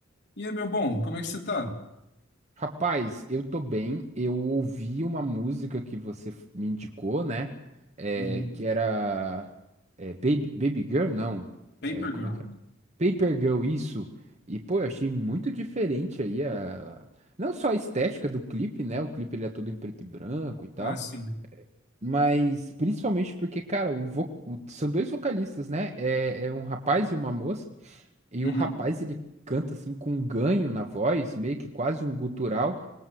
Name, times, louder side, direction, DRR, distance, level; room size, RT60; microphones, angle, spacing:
voice 1, 0.4-1.8 8.1-8.5 11.8-12.5 20.8-21.3 28.4-28.7, left 1 dB, 60° left, 2 dB, 3.3 m, -31 dB
voice 2, 2.6-7.5 8.0-9.5 10.0-11.5 11.9-12.3 13.0-14.1 14.5-17.0 17.4-21.0 22.0-28.0 28.3-29.2 29.5-32.8, right 2 dB, 35° right, 4 dB, 1.4 m, -29 dB
25.0 x 19.5 x 7.8 m, 0.90 s
head